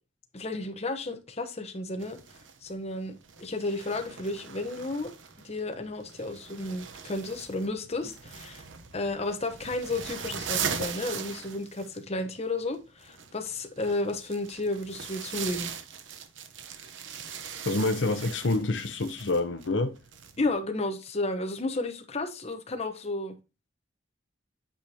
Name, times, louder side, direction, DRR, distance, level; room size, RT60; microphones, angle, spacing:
voice 1, 0.3-2.2 2.6-5.1 5.4-8.6 8.9-15.7 20.4-23.3, left 2 dB, 35° left, 1.0 m, -32 dB
sound 1, 2.0-20.5, right 7 dB, 80° right, 0.9 m, -40 dB
voice 2, 17.6-20.0, left 2 dB, 75° left, 0.7 m, -27 dB
8.8 x 5.0 x 2.8 m
head